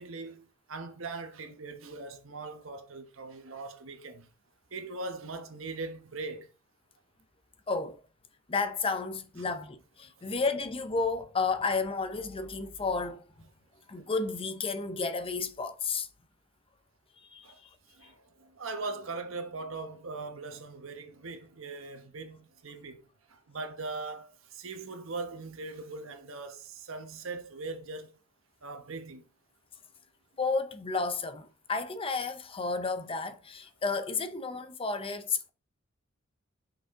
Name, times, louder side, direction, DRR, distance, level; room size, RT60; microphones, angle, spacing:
voice 1, 0.0-4.3 4.7-6.5 10.2-10.3 17.4-17.6 17.9-23.0 23.3-28.2 28.6-29.2, right 3 dB, 80° right, 1.1 m, -40 dB
voice 2, 7.7-8.0 8.5-13.2 13.9-16.1 17.2-17.5 30.4-35.5, left 4 dB, 25° left, 0.6 m, -32 dB
5.9 x 5.4 x 3.6 m
head